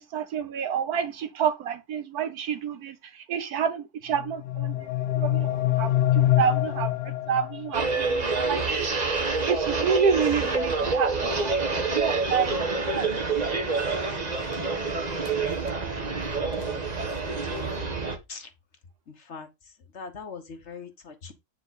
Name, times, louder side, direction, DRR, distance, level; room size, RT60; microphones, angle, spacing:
voice 1, 0.0-2.9 3.3-4.9 5.1-5.9 6.1-6.9 7.3-8.6 9.5-11.6 11.9-13.1, right 7 dB, 75° right, 1.5 m, -28 dB
sound 1, 4.1-8.1, left 13 dB, 85° left, 1.2 m, -25 dB
sound 2, 7.7-18.2, right 3 dB, 30° right, 1.1 m, -27 dB
voice 2, 16.5-16.8 17.2-17.9 18.3-18.5 19.1-19.5 19.9-21.3, left 5 dB, 50° left, 1.4 m, -42 dB
8.7 x 4.7 x 4.1 m
omnidirectional pair, 1.6 m